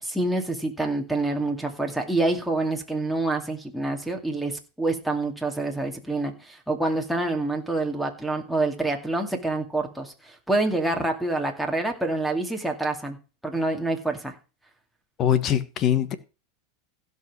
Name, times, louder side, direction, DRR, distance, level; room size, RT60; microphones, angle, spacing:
voice 1, 0.0-13.2 13.4-14.3, right 2 dB, ahead, 2.4 m, -27 dB
voice 2, 15.2-16.1, left 10 dB, 35° left, 1.4 m, -22 dB
16.0 x 5.5 x 6.2 m
supercardioid pair, 125°, 0 cm